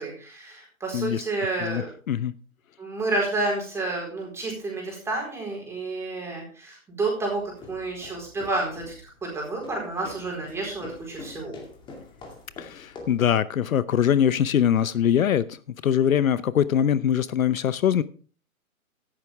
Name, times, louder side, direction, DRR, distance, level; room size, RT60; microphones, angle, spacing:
voice 1, 0.0-1.9 2.8-8.9 9.2-11.6, right 2 dB, 5° right, -1 dB, 4.3 m, -30 dB
voice 2, 1.6-2.3 12.6-15.6 15.8-18.0, left 9 dB, 70° left, 16 dB, 0.8 m, -22 dB
sound 1, 7.4-13.3, left 3 dB, 10° left, 2.2 m, -45 dB
14.0 x 11.0 x 3.5 m, 0.40 s
hypercardioid pair, 155°, 42 cm